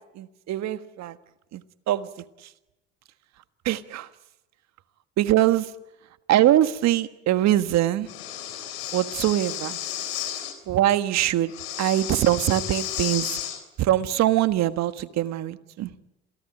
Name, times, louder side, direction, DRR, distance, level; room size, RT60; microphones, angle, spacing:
voice 1, 0.2-1.2 1.5-1.6 1.9-2.1 3.6-4.1 5.2-5.7 6.3-8.1 8.9-9.8 10.7-11.5 11.8-13.4 13.8-15.9, right 13 dB, 65° right, 12 dB, 1.5 m, -22 dB
Breathing, 8.1-10.5 11.5-13.6, left 12 dB, 90° left, 3.8 m, -33 dB
27.5 x 17.5 x 9.0 m, 0.95 s
supercardioid pair, 70°, 30 cm